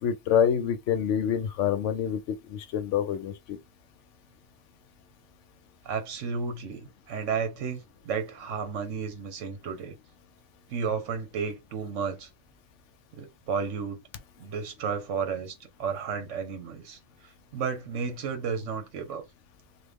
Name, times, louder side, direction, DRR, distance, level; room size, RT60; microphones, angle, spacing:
voice 1, 0.0-3.6, left 8 dB, 75° left, 0.9 m, -27 dB
voice 2, 5.8-9.9 10.7-12.3 13.1-14.0 14.4-17.0 17.5-19.2, right 6 dB, 75° right, 1.2 m, -32 dB
3.2 x 2.2 x 3.4 m
omnidirectional pair, 1.3 m